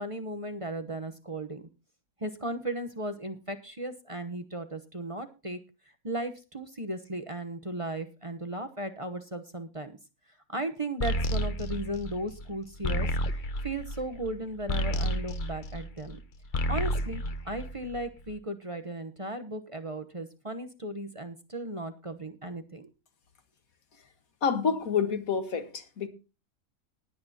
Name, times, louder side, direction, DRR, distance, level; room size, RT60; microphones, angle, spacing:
voice 1, 0.0-1.6 2.2-5.6 6.0-10.0 10.5-13.1 13.6-16.2 16.7-22.9, right 1 dB, 25° right, 1.0 m, -36 dB
sound 1, 11.0-16.2 16.5-18.2, equal, 40° left, 1.0 m, -31 dB
voice 2, 24.4-26.1, left 6 dB, 80° left, 2.0 m, -28 dB
20.0 x 8.7 x 2.9 m
omnidirectional pair, 1.4 m